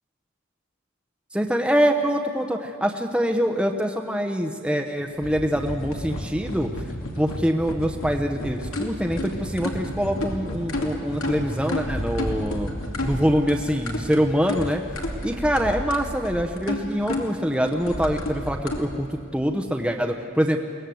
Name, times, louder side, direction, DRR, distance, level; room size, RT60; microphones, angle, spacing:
voice 1, 1.3-6.7 7.2-12.7 13.0-14.8 15.2-20.6, equal, 5° right, 4 dB, 0.8 m, -24 dB
sound 1, 5.2-18.8, left 1 dB, 85° left, 2.7 m, -31 dB
22.5 x 18.0 x 7.8 m, 2.3 s
head